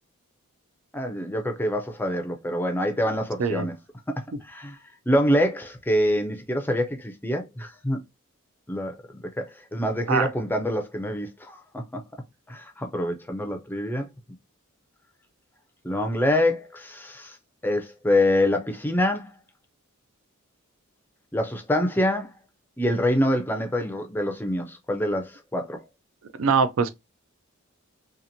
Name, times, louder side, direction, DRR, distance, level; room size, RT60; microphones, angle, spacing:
voice 1, 0.9-3.7 4.1-4.8 5.1-8.0 8.7-9.0 9.4-12.0 12.5-14.1 15.8-17.4 17.6-19.3 21.3-22.3 22.8-25.8, left 1 dB, 10° left, 0.4 m, -25 dB
voice 2, 26.4-26.9, right 5 dB, 70° right, 0.4 m, -22 dB
2.9 x 2.4 x 2.6 m
head